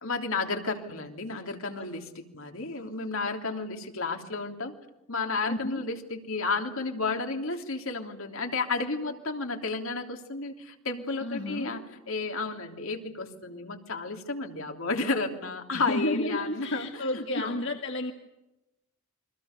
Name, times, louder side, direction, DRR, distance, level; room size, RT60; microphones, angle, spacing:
voice 1, 0.0-4.7 5.1-17.6, left 3 dB, 75° left, 4 dB, 3.3 m, -32 dB
voice 2, 5.5-5.8 11.2-11.8 15.7-18.1, left 1 dB, 55° left, 3 dB, 2.0 m, -32 dB
29.5 x 23.5 x 6.8 m, 0.94 s
head